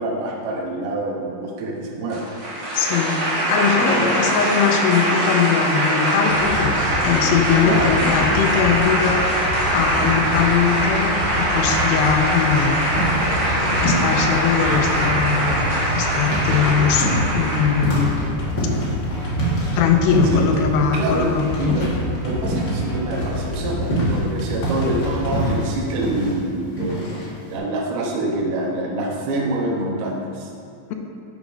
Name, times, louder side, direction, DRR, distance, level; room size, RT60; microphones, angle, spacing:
voice 1, 0.0-2.2 3.8-4.3 7.6-8.1 20.2-20.4 20.9-21.3 21.6-21.9 22.2-27.1 27.5-30.5, right 2 dB, 75° right, -2 dB, 3.0 m, -26 dB
sound 1, 2.1-18.1, right 1 dB, 50° right, 1.3 m, -22 dB
voice 2, 2.7-13.0 13.3-15.5 16.0-18.2 19.8-21.8, left 7 dB, 85° left, 4 dB, 2.8 m, -21 dB
sound 2, 6.3-25.5, left 1 dB, 60° left, 1.2 m, -28 dB
sound 3, 12.3-13.6 13.8-22.9 23.1-27.6, right 1 dB, 45° left, 1.4 m, -27 dB
9.2 x 5.2 x 5.2 m, 2.6 s
omnidirectional pair, 4.8 m